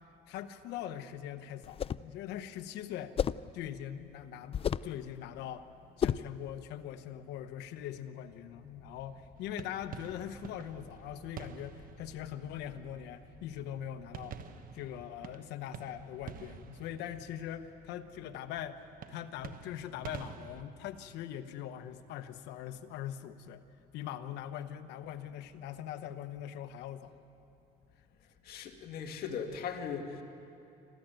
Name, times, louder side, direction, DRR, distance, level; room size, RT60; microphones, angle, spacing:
voice 1, 0.3-3.2 3.5-5.6 6.0-14.4 14.7-23.6 23.9-27.2, left 10 dB, 90° left, 9 dB, 1.0 m, -42 dB
sound 1, 1.6-2.1 3.2-3.5 4.5-5.0 6.0-6.3, left 8 dB, 35° left, 0.4 m, -31 dB
sound 2, 8.5-14.3, equal, ahead, 5.4 m, -58 dB
sound 3, 9.4-20.6, right 8 dB, 55° right, 1.2 m, -49 dB
voice 2, 28.4-30.2, left 6 dB, 65° left, 4 dB, 2.1 m, -38 dB
28.0 x 13.5 x 9.0 m, 2.8 s
cardioid pair, 110°, 17 cm